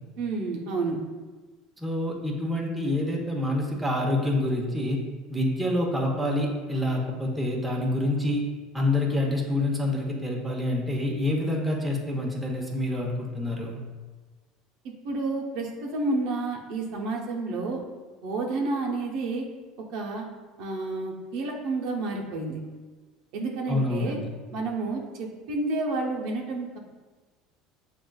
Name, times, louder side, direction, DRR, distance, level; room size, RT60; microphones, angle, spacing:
voice 1, 0.2-1.0 15.0-17.8 18.2-19.4 19.9-20.2 20.6-22.6 23.3-24.2 24.5-26.8, right 3 dB, 70° right, -1 dB, 0.7 m, -30 dB
voice 2, 1.8-5.0 5.3-8.4 8.7-13.8 23.7-24.3, left 1 dB, 5° right, -2 dB, 0.8 m, -27 dB
7.0 x 2.4 x 2.3 m, 1.3 s
supercardioid pair, 105°, 0 cm